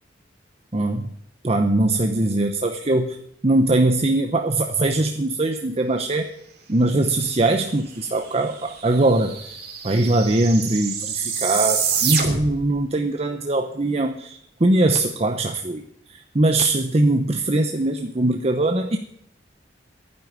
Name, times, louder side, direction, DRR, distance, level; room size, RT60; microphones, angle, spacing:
voice 1, 0.7-1.1 1.4-3.2 3.4-6.3 6.7-9.6 9.8-15.8 16.1-19.0, right 2 dB, 35° right, 6 dB, 0.8 m, -21 dB
sound 1, 8.2-8.3 8.5-12.7, right 6 dB, 60° right, 3.1 m, -27 dB
11.5 x 9.8 x 8.3 m, 0.72 s
head